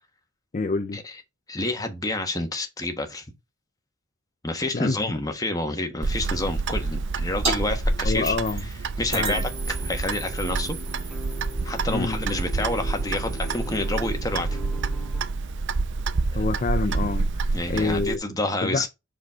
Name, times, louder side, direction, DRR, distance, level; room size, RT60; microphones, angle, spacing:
voice 1, 0.5-1.0 4.7-5.0 8.0-8.6 9.1-9.4 11.9-12.2 16.3-18.2 18.6-18.8, left 3 dB, 35° left, 0.4 m, -27 dB
voice 2, 1.5-3.3 4.4-8.4 9.0-10.8 11.6-14.5 16.3-16.4 17.5-18.9, left 2 dB, 15° left, 1.4 m, -29 dB
Clock, 6.0-18.2, right 3 dB, 60° right, 0.6 m, -28 dB
sound 1, 7.4-7.6 7.8-8.7 9.1-14.2, right 2 dB, 30° right, 4.2 m, -33 dB
sound 2, 9.3-15.3, equal, ahead, 2.1 m, -40 dB
6.0 x 5.2 x 3.7 m
head